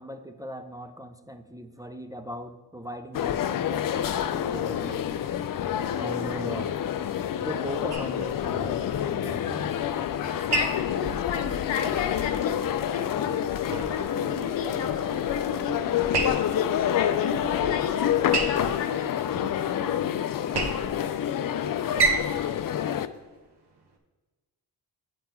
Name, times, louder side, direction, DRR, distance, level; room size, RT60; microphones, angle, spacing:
voice 1, 0.0-5.1 5.9-6.7 7.4-9.7, right 1 dB, 10° right, 0.5 m, -39 dB
sound 1, 3.1-23.1, left 10 dB, 50° left, 0.5 m, -28 dB
sound 2, 7.9-24.0, right 4 dB, 65° right, 1.1 m, -34 dB
voice 2, 10.2-21.0, left 6 dB, 90° left, 0.7 m, -34 dB
8.9 x 3.5 x 4.5 m
cardioid pair, 55°, 44 cm